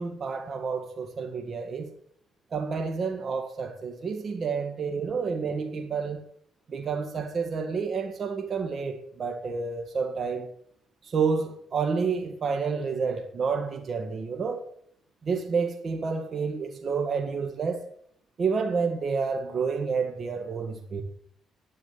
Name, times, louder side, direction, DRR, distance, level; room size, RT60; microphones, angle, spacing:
voice 1, 0.0-1.9 2.5-6.2 6.7-10.5 11.0-14.6 15.2-17.8 18.4-21.0, right 5 dB, 50° right, 1.9 m, -29 dB
10.0 x 9.9 x 7.5 m
cardioid pair, 90°, 0 cm